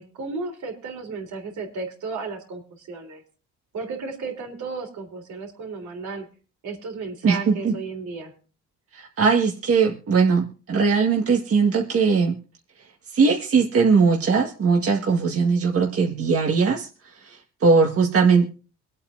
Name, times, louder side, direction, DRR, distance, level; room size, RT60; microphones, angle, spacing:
voice 1, 0.0-3.2 3.7-6.3 6.6-8.3, right 4 dB, 70° right, 4 dB, 3.7 m, -34 dB
voice 2, 7.2-7.7 8.9-12.4 13.1-18.4, right 5 dB, 50° right, 1 dB, 1.7 m, -20 dB
25.0 x 8.5 x 2.6 m, 0.37 s
cardioid pair, 90°, 30 cm